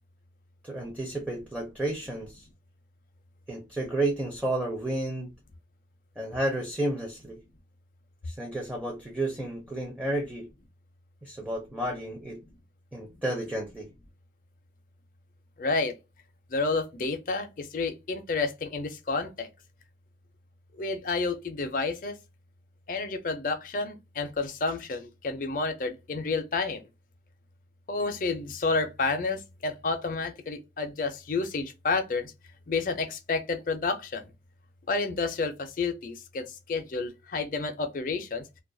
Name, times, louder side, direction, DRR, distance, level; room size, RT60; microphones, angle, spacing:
voice 1, 0.6-2.5 3.5-5.3 6.2-7.4 8.2-10.5 11.2-12.4 12.9-13.9, right 1 dB, 10° right, 0.5 m, -31 dB
voice 2, 15.6-15.9 16.5-19.5 20.7-22.2 22.9-26.8 27.9-32.3 32.7-34.3 34.9-38.4, left 3 dB, 50° left, 0.5 m, -30 dB
2.3 x 2.1 x 2.5 m
head